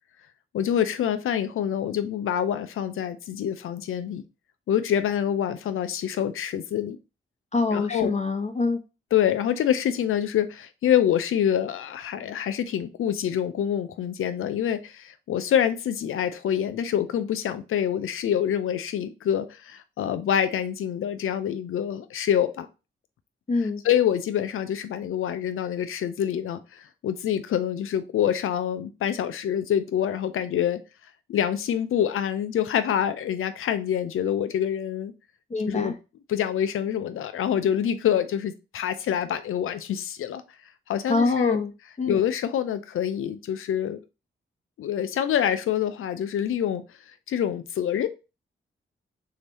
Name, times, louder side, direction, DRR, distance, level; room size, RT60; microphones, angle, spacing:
voice 1, 0.5-4.2 4.7-7.0 7.7-8.1 9.1-22.7 23.8-30.8 31.3-35.1 35.7-36.0 36.3-40.4 40.9-41.6 42.1-44.0 44.8-46.8 47.3-48.1, left 9 dB, 85° left, 0.5 m, -26 dB
voice 2, 7.5-8.8 23.5-23.8 35.5-35.9 41.1-41.7 42.0-42.2, left 3 dB, 35° left, 0.9 m, -25 dB
3.3 x 2.8 x 4.0 m
cardioid pair, 45°, 21 cm